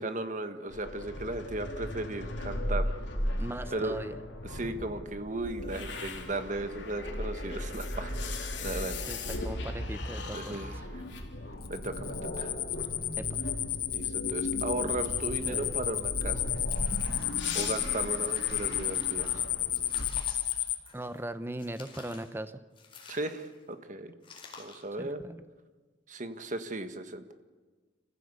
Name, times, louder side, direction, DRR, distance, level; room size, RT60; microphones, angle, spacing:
voice 1, 0.0-2.9 3.7-4.0 4.4-9.0 10.3-11.0 11.7-12.6 13.9-16.5 17.5-19.5 23.1-24.1 24.6-25.2 26.1-27.3, right 2 dB, 45° right, 8 dB, 1.6 m, -36 dB
sound 1, 0.7-20.1, left 1 dB, 75° left, 3.7 m, -37 dB
voice 2, 3.4-4.2 9.1-10.7 13.2-13.3 20.9-22.6 25.0-25.4, right 1 dB, 10° right, 11 dB, 0.9 m, -39 dB
sound 2, 11.6-20.8, left 13 dB, 55° left, 1.3 m, -32 dB
sound 3, 16.6-17.6 18.0-19.3 19.7-21.2 21.6-22.3 22.7-23.6 24.2-24.9, left 4 dB, 30° left, 4.4 m, -51 dB
28.0 x 15.5 x 8.3 m, 1.4 s
head